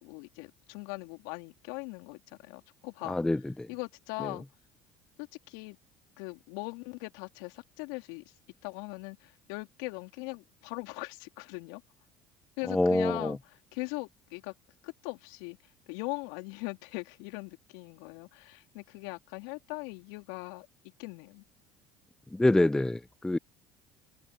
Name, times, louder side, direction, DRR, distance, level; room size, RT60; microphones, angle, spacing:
voice 1, 0.0-3.2 3.7-4.4 5.2-5.8 6.2-8.3 8.6-11.8 12.6-13.4 13.7-14.5 14.8-20.7 21.0-21.4, left 28 dB, 75° left, 3.6 m, -40 dB
voice 2, 3.1-3.7 4.2-4.3 12.7-13.4 22.3-23.4, left 2 dB, 5° left, 0.3 m, -26 dB
open air
hypercardioid pair, 70°, 10 cm